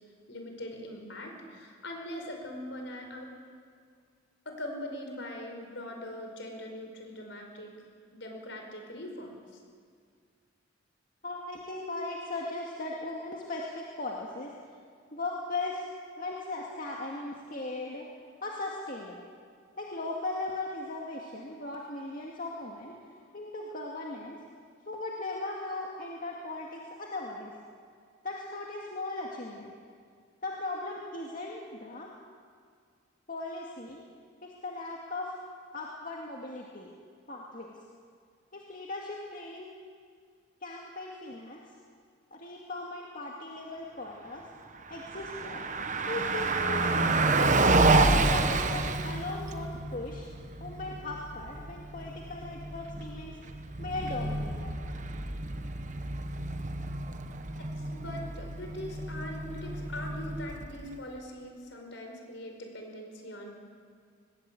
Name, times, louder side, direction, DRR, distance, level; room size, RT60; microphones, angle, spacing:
voice 1, 0.3-3.3 4.4-7.7 8.1-9.6 57.5-63.5, left 1 dB, 65° left, 3 dB, 5.2 m, -41 dB
voice 2, 11.2-14.5 15.1-15.9 16.2-18.1 18.4-19.2 19.8-23.0 23.3-24.4 24.9-27.5 28.2-29.8 30.4-32.1 33.3-34.0 34.4-35.3 35.7-36.9 37.3-37.7 38.5-39.7 40.6-41.6 42.3-44.4 44.9-45.6 46.1-47.4 48.1-50.2 50.6-53.4 53.8-54.8, left 2 dB, 45° left, -2 dB, 2.2 m, -38 dB
Car passing by, 44.8-61.0, right 3 dB, 40° right, 1.1 m, -29 dB
20.5 x 20.0 x 8.5 m, 2.1 s
head